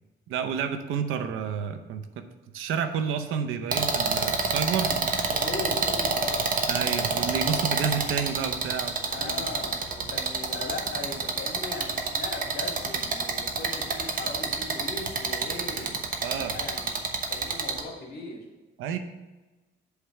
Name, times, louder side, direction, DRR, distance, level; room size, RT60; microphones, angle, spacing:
voice 1, 0.3-2.2 2.5-5.0 6.7-9.5 16.2-16.6 18.8-19.0, right 7 dB, 90° right, 8 dB, 0.7 m, -30 dB
sound 1, 3.7-17.8, right 4 dB, 45° right, 1.0 m, -27 dB
voice 2, 4.9-7.4 9.0-16.0 16.4-18.4, left 3 dB, 55° left, 0 dB, 2.1 m, -39 dB
8.0 x 3.3 x 5.8 m, 1.1 s
cardioid pair, 90°, 20 cm